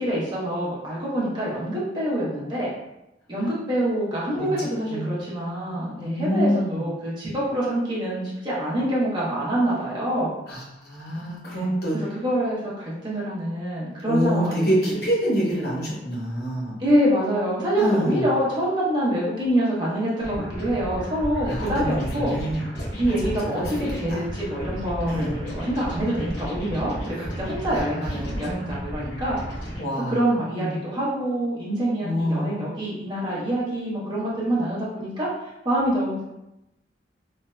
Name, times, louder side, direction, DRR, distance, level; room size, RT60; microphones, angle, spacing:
voice 1, 0.0-2.7 3.3-10.3 11.5-15.0 15.6-15.7 16.8-22.3 23.0-23.6 23.9-29.4 30.1-35.3 35.6-36.2, right 1 dB, 25° right, -8 dB, 0.9 m, -26 dB
voice 2, 5.6-6.9 10.5-12.0 14.0-16.8 17.8-18.3 21.4-22.7 23.1-23.3 23.6-23.7 24.1-24.2 25.1-25.4 28.4-28.5 29.8-30.2 30.5-30.7 32.0-32.6, equal, 60° left, -5 dB, 0.9 m, -26 dB
sound 1, 20.2-29.8, equal, 90° left, 1.3 m, -33 dB
3.2 x 2.7 x 2.2 m, 0.90 s
head